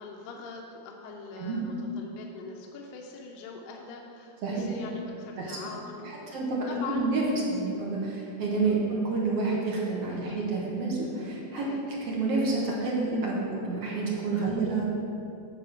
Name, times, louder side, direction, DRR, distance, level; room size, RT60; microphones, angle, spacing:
voice 1, 0.0-6.4 6.7-7.5 8.6-8.8 10.3-10.4 11.5-11.8 14.4-14.7, left 4 dB, 80° left, 0 dB, 2.4 m, -43 dB
voice 2, 6.3-7.2 7.5-14.8, right 3 dB, 60° right, -4 dB, 1.7 m, -29 dB
8.9 x 4.3 x 7.0 m, 2.6 s
omnidirectional pair, 4.2 m